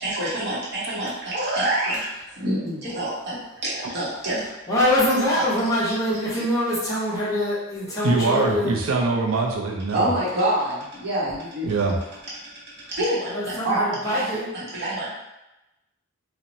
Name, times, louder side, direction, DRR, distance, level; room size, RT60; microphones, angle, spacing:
voice 1, 0.0-2.1 2.3-4.5 5.3-5.5 5.9-6.4 9.9-11.9 12.9-15.1, right 1 dB, 55° right, -8 dB, 0.8 m, -27 dB
voice 2, 4.7-8.7 13.3-14.5, left 1 dB, 15° left, -9 dB, 0.8 m, -24 dB
voice 3, 7.8-10.1 11.6-12.0, right 3 dB, 85° right, 1 dB, 0.5 m, -23 dB
2.9 x 2.1 x 2.6 m, 0.94 s
head